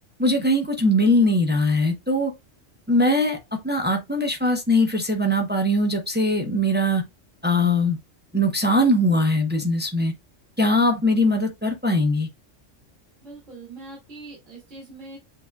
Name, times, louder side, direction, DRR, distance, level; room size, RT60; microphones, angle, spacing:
voice 1, 0.2-2.3 2.9-3.4 3.6-7.0 7.4-8.0 8.3-10.1 10.6-12.3, left 1 dB, 10° right, 0.5 m, -21 dB
voice 2, 13.2-15.2, right 2 dB, 40° right, 2.4 m, -42 dB
7.4 x 2.6 x 2.2 m
omnidirectional pair, 1.3 m